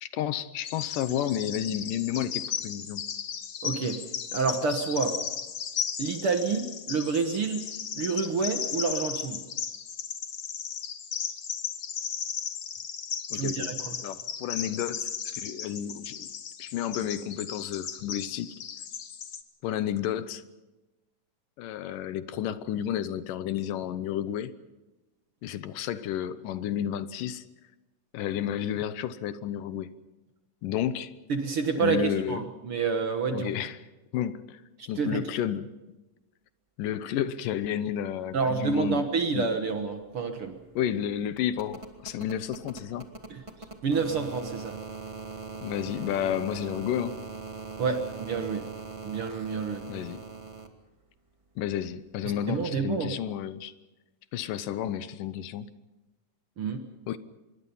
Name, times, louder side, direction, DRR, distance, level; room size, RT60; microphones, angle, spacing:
voice 1, 0.0-3.0 13.3-13.7 14.0-16.3 16.6-18.5 19.6-20.4 21.6-24.5 25.4-27.4 28.1-29.9 30.6-31.1 31.8-32.4 33.3-33.8 34.1-34.6 34.9-35.7 36.8-39.0 39.3-39.5 40.8-43.1 45.6-47.2 49.9-50.2 51.6-53.7 54.3-55.7 57.1-57.2, left 10 dB, 80° left, 2.6 m, -31 dB
Bird vocalization bird call bird song, 0.6-19.4, left 7 dB, 55° left, 1.5 m, -36 dB
voice 2, 3.6-4.0 4.3-5.2 6.0-7.7 8.0-9.4 13.3-14.0 31.3-33.5 34.8-35.2 38.3-40.6 43.3-43.4 43.8-44.8 47.8-48.7 49.0-49.8 52.3-53.1 56.6-56.9, right 5 dB, 55° right, 1.8 m, -28 dB
sound 1, 39.5-39.6 39.8-50.7 52.1-52.2, right 4 dB, 15° right, 1.3 m, -42 dB
25.5 x 22.0 x 5.6 m
omnidirectional pair, 3.8 m